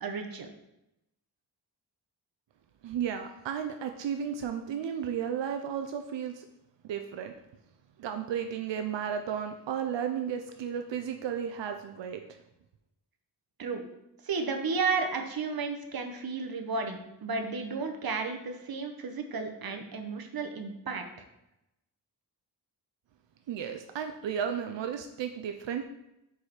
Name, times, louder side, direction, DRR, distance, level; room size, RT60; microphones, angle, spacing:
voice 1, 0.0-0.5 13.6-13.8 14.3-21.0, right 4 dB, 55° right, 5 dB, 0.9 m, -33 dB
voice 2, 2.8-6.5 6.8-7.3 8.0-12.4 23.5-25.8, right 8 dB, 90° right, 6 dB, 0.5 m, -34 dB
4.9 x 4.6 x 4.3 m, 0.88 s
wide cardioid pair, 95°, 43 cm